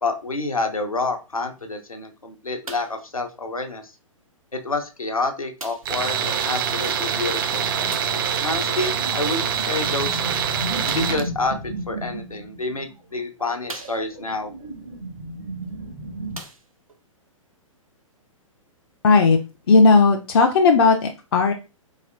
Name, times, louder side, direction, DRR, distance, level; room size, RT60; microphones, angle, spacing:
voice 1, 0.0-3.8 4.5-7.7 8.4-10.2 10.9-14.5, left 3 dB, 85° left, 5 dB, 0.6 m, -28 dB
sound 1, 2.6-3.1 4.0-4.1 5.6-6.0 7.9-8.3 10.8-11.3 12.2-12.3 13.0-13.1 13.6-14.4 15.6-15.7 16.2-17.0 17.8-17.9, right 2 dB, 85° right, 0.7 m, -39 dB
Tools, 5.9-11.3, right 7 dB, 40° right, 0.4 m, -25 dB
sound 2, 7.3-16.4, right 1 dB, 70° right, 1.2 m, -35 dB
voice 2, 19.0-19.4 19.7-21.5, left 4 dB, 45° left, 3 dB, 0.4 m, -15 dB
4.0 x 2.8 x 2.5 m, 0.30 s
figure-of-eight pair, 115°, 17 cm